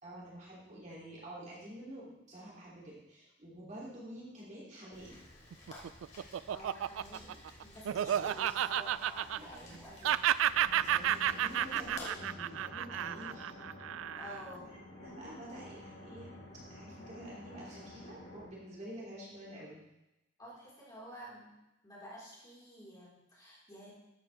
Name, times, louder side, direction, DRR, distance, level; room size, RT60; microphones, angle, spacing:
voice 1, 0.0-5.2 8.0-8.4 9.4-10.0 10.7-13.6 14.2-14.4 14.6-16.3 16.7-19.8, right 1 dB, 40° right, -6 dB, 3.0 m, -49 dB
Rain, 4.9-12.1, left 2 dB, 40° left, 3.2 m, -53 dB
Laughter, 5.5-9.8 10.0-14.5, right 10 dB, 85° right, 0.3 m, -32 dB
voice 2, 6.5-10.3 14.2-14.7 20.4-21.5 21.8-23.9, equal, 20° left, -7 dB, 4.4 m, -50 dB
sound 1, 10.5-18.5, left 1 dB, 90° left, 4.3 m, -50 dB
13.5 x 7.9 x 3.4 m, 0.93 s
head